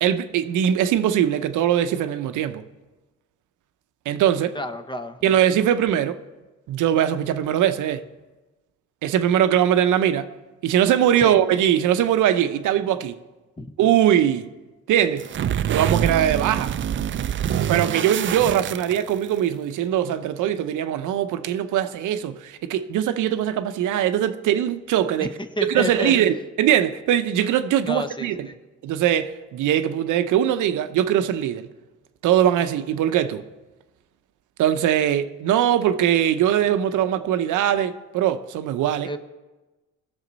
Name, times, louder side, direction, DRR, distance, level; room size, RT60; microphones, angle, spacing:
voice 1, 0.0-2.6 4.1-4.5 5.2-6.2 6.7-8.0 9.0-10.3 10.6-13.2 13.8-14.5 14.9-15.2 15.7-16.7 17.7-25.3 25.6-28.5 28.8-31.7 32.2-33.4 34.6-39.1, right 10 dB, 80° right, 0.7 m, -21 dB
voice 2, 4.5-5.2 11.2-11.4 13.6-13.7 25.2-25.3 25.6-26.1 27.8-28.6 39.0-39.2, left 1 dB, 15° left, 0.8 m, -30 dB
sound 1, 15.2-19.4, right 10 dB, 40° right, 0.4 m, -25 dB
18.0 x 7.1 x 4.0 m
cardioid pair, 90°, 30 cm